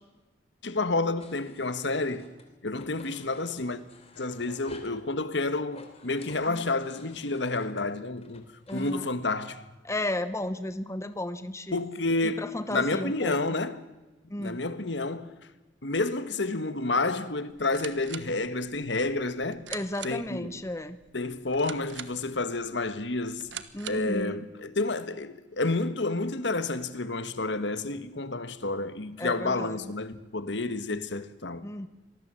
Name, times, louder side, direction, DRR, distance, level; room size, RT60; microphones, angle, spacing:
voice 1, 0.6-2.3 2.6-3.8 4.2-8.4 8.7-9.6 11.7-13.8 14.4-15.3 15.8-19.6 20.0-20.6 21.1-23.5 23.9-31.6, left 2 dB, 70° left, 1.5 m, -30 dB
sound 1, 1.2-2.4 2.7-5.0 5.6-8.9, left 3 dB, 35° left, 3.3 m, -52 dB
voice 2, 8.7-9.1 9.8-11.8 12.2-13.5 14.3-14.6 19.7-21.0 23.7-24.4 29.2-29.8 31.6-31.9, left 1 dB, 15° left, 0.9 m, -34 dB
sound 2, 17.5-24.2, right 9 dB, 75° right, 1.4 m, -44 dB
26.0 x 19.5 x 7.6 m
head